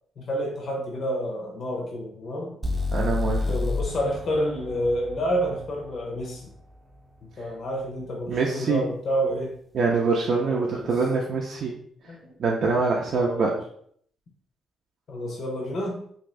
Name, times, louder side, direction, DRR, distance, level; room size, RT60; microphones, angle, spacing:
voice 1, 0.2-2.6 3.4-6.5 7.2-9.6 10.4-11.1 12.1-12.4 13.1-13.6 15.1-16.0, equal, 55° left, 0 dB, 0.7 m, -29 dB
sound 1, 2.6-6.6, left 3 dB, 20° right, 0.6 m, -30 dB
voice 2, 2.9-3.5 8.3-8.8 9.7-11.7 12.4-13.5, right 4 dB, 60° right, -2 dB, 0.5 m, -24 dB
2.6 x 2.5 x 3.2 m, 0.63 s
cardioid pair, 90°, 0 cm